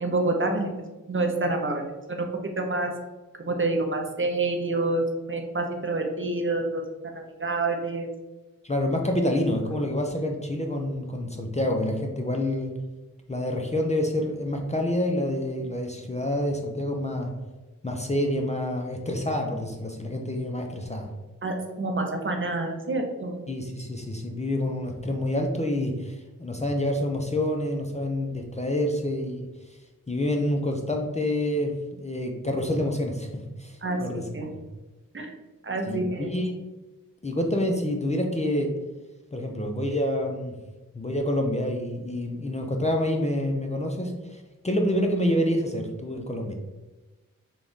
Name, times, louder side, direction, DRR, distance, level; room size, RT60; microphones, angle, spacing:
voice 1, 0.0-0.7 1.1-1.8 2.1-2.3 2.6-2.9 3.4-5.0 5.3-6.8 7.4-8.1 21.4-23.4 33.8-34.0 34.3-34.5 35.1-35.3 35.6-36.3, right 2 dB, 35° right, 3 dB, 0.6 m, -27 dB
voice 2, 8.6-12.7 13.3-17.3 17.8-21.1 23.5-29.8 30.1-34.6 35.9-36.5 37.2-38.7 39.3-40.6 40.9-46.5, left 1 dB, 20° left, 2 dB, 0.5 m, -27 dB
3.8 x 2.3 x 3.6 m, 1.1 s
cardioid pair, 50°, 34 cm